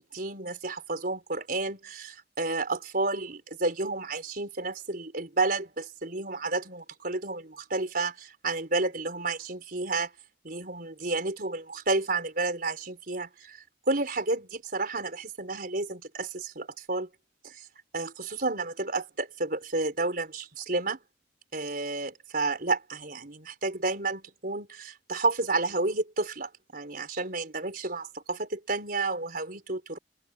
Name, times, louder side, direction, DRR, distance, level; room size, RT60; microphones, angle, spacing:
voice 1, 0.0-10.1 10.4-17.1 17.4-17.6 17.9-21.0 21.5-30.0, right 3 dB, 50° right, 4.6 m, -31 dB
open air
head